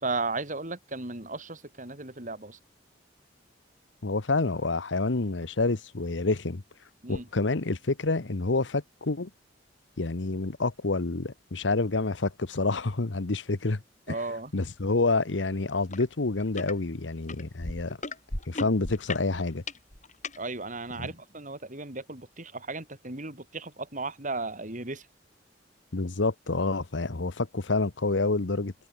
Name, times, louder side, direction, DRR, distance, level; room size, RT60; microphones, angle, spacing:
voice 1, 0.0-2.6 7.0-7.3 14.1-14.5 20.4-25.1, right 3 dB, 45° right, 4.6 m, -35 dB
voice 2, 4.0-6.6 7.1-9.3 10.0-13.8 14.1-14.2 14.5-18.0 18.5-19.6 21.0-21.1 25.9-28.7, left 3 dB, 85° left, 1.1 m, -28 dB
sound 1, 15.9-16.0 16.4-16.7 17.3-20.4 21.1-21.2, left 3 dB, 45° left, 3.8 m, -36 dB
head